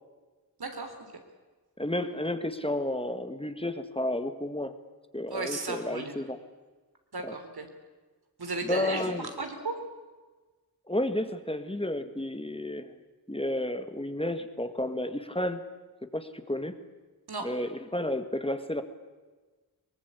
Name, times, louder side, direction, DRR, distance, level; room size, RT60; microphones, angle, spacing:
voice 1, 0.6-1.2 5.3-6.2 7.1-7.7 8.4-9.8 17.3-17.5, right 3 dB, 75° right, 5 dB, 3.6 m, -35 dB
voice 2, 1.8-4.7 5.1-6.4 7.2-7.3 8.6-9.3 10.9-12.9 13.3-15.6 16.1-16.8 17.4-18.8, left 1 dB, 15° left, 9 dB, 1.9 m, -31 dB
23.0 x 19.5 x 8.4 m, 1.3 s
cardioid pair, 50°, 38 cm